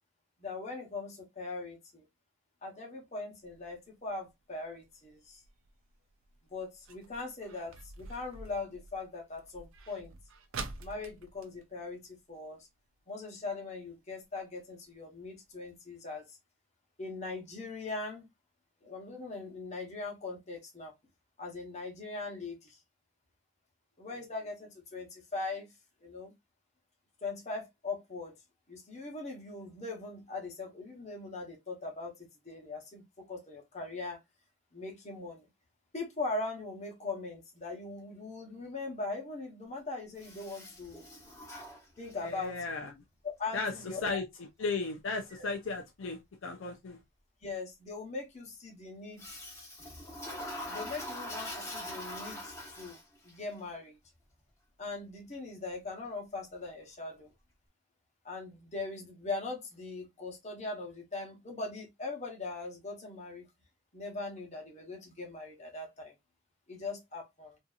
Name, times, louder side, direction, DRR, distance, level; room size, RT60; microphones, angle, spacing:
voice 1, 0.4-2.0 2.6-5.4 6.5-10.1 10.8-12.7 13.1-16.4 17.0-18.3 18.8-20.9 21.4-22.8 24.0-25.7 26.0-26.3 27.2-28.4 28.7-34.2 34.7-35.5 35.9-41.0 42.0-42.6 43.2-44.2 45.4-45.5 47.4-49.4 50.7-54.0 54.8-57.3 58.2-63.5 63.9-66.2 66.7-67.6, left 3 dB, 35° left, 1.0 m, -40 dB
sound 1, 3.4-12.7 13.0-13.1 13.3-13.7 14.2-14.3 14.8-14.9 15.2-15.3 15.7-15.8, right 4 dB, 75° right, 0.5 m, -48 dB
Toilet flush, 40.2-42.4 49.2-53.3, left 1 dB, 15° left, 1.0 m, -43 dB
voice 2, 42.2-42.9 43.5-43.7 44.0-44.2 44.6-47.0, left 3 dB, 70° left, 0.5 m, -35 dB
2.7 x 2.6 x 2.3 m
head